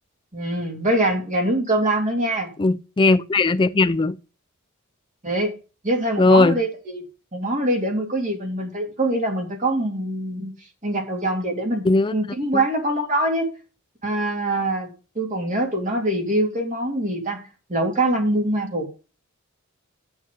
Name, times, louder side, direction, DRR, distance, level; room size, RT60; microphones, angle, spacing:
voice 1, 0.3-2.5 5.2-5.5 5.8-7.0 7.3-10.5 10.8-13.5 14.0-17.4 17.7-18.9, right 1 dB, 35° right, 2.9 m, -24 dB
voice 2, 2.6-4.2 6.2-6.6 11.8-12.1, left 3 dB, 20° left, 0.4 m, -18 dB
9.5 x 6.3 x 5.3 m
head